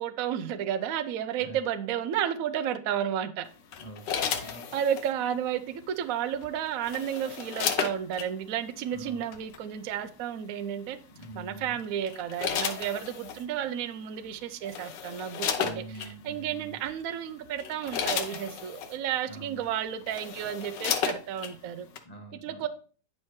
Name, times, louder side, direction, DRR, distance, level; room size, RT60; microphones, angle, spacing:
voice 1, 0.0-3.5 4.4-11.0 11.3-21.9 22.4-22.7, right 9 dB, 65° right, 0.9 m, -32 dB
sound 1, 3.7-5.1 6.4-8.3 9.3-9.6 11.2-11.5 12.1-13.4 14.2-14.3 14.6-16.1 16.8-17.0 17.4-18.9 19.6-19.7 20.0-21.5 22.0-22.1, left 7 dB, 85° left, 1.5 m, -33 dB
voice 2, 3.8-4.8 8.9-9.2 11.1-11.8 15.6-16.8 19.2-19.6 22.0-22.7, right 2 dB, 25° left, 1.1 m, -45 dB
9.5 x 5.5 x 3.2 m
omnidirectional pair, 1.9 m